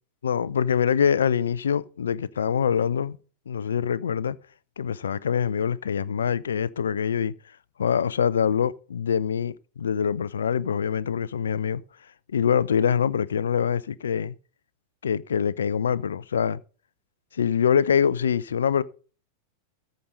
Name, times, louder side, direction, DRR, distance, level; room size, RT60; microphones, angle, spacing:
voice 1, 0.2-3.2 3.5-4.4 4.8-7.3 7.8-11.8 12.3-14.3 15.0-16.6 17.3-18.8, left 7 dB, 65° left, 0.5 m, -24 dB
14.0 x 5.2 x 5.4 m
figure-of-eight pair, 90°, 0 cm